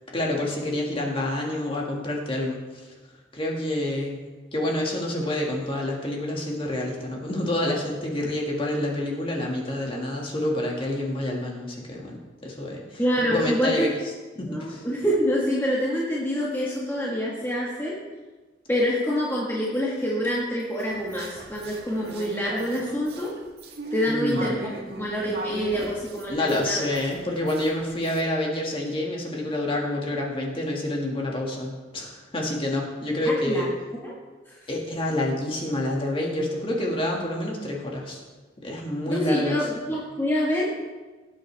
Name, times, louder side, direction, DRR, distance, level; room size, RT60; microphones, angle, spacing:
voice 1, 0.1-2.6 3.3-4.2 4.5-13.0 13.3-13.9 14.4-14.8 24.1-24.7 25.7-25.9 26.3-33.7 34.7-38.2 38.6-39.6, left 1 dB, 30° left, -2 dB, 2.1 m, -28 dB
voice 2, 13.0-13.9 14.4-17.9 18.7-23.3 23.9-24.6 25.0-26.8 33.2-33.7 34.0-34.1 34.5-34.6 39.1-40.7, equal, 15° left, -5 dB, 1.6 m, -26 dB
sound 1, 20.8-28.2, right 2 dB, 65° right, 1.7 m, -39 dB
17.0 x 8.4 x 3.5 m, 1.3 s
head